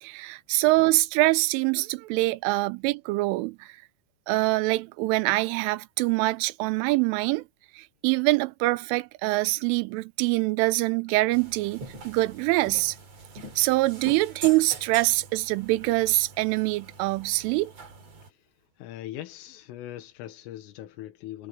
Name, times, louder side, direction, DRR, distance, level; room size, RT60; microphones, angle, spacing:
voice 1, 0.0-3.7 4.3-7.4 7.8-13.0 13.6-17.7, right 21 dB, 85° right, 3.2 m, -24 dB
sound 1, 11.3-18.3, right 3 dB, 35° right, 4.0 m, -44 dB
voice 2, 18.8-21.5, left 13 dB, 90° left, 4.2 m, -40 dB
omnidirectional pair, 5.7 m